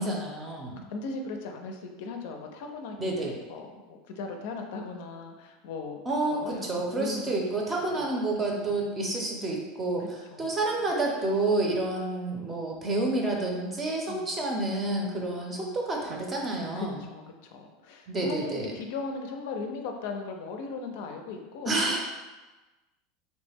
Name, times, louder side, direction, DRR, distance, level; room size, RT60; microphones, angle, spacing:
voice 1, 0.0-0.8 3.0-3.3 6.1-10.0 10.4-17.0 18.1-18.7 21.7-22.0, right 2 dB, 20° right, 0 dB, 0.6 m, -29 dB
voice 2, 0.9-6.0 6.3-7.4 7.8-8.1 8.6-9.0 10.0-10.5 14.1-14.3 16.8-22.0, left 4 dB, 70° left, 3 dB, 0.4 m, -38 dB
3.1 x 2.1 x 3.4 m, 1.2 s
supercardioid pair, 130°, 0 cm